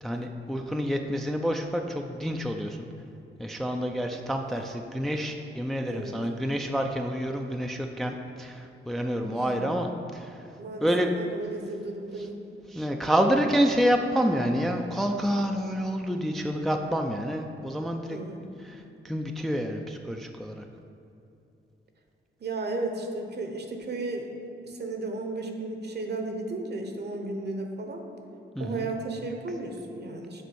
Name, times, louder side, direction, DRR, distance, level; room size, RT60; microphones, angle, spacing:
voice 1, 0.0-2.9 3.4-10.4 10.8-11.1 12.2-12.3 12.7-18.2 18.6-20.6 28.6-28.9, equal, ahead, 3 dB, 0.4 m, -28 dB
voice 2, 5.8-6.1 9.2-9.6 10.6-10.9 11.1-12.4 18.1-18.5 22.4-24.3 24.6-28.0 28.6-30.4, right 2 dB, 50° right, 4 dB, 1.0 m, -34 dB
6.8 x 4.2 x 6.2 m, 2.8 s
cardioid pair, 80°, 21 cm